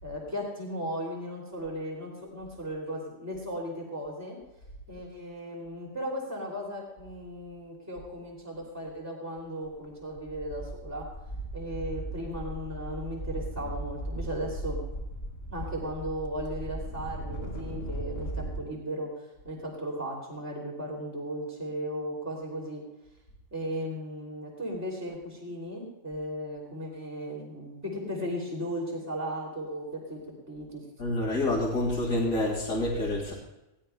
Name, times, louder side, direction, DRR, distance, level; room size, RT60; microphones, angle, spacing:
voice 1, 0.0-4.4 4.9-11.1 11.5-14.8 15.5-22.8 23.5-30.8, equal, 10° right, -3 dB, 2.7 m, -36 dB
sound 1, 9.7-9.9 10.2-18.6, right 1 dB, 45° left, 2.0 m, -37 dB
voice 2, 31.0-33.3, left 1 dB, 85° left, -5 dB, 2.6 m, -27 dB
21.5 x 16.0 x 2.3 m, 0.96 s
omnidirectional pair, 1.4 m